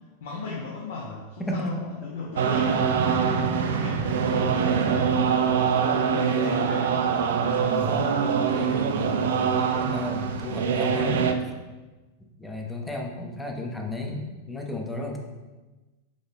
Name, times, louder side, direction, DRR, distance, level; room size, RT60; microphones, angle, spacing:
voice 1, 0.2-7.0 13.3-13.4, left 3 dB, 60° left, -4 dB, 0.7 m, -37 dB
voice 2, 1.4-1.8 7.4-11.3 12.4-15.2, left 2 dB, 5° left, 1 dB, 0.6 m, -33 dB
sound 1, 2.4-11.3, right 6 dB, 60° right, 0.3 m, -24 dB
3.8 x 3.8 x 3.5 m, 1.2 s
figure-of-eight pair, 90°, 0 cm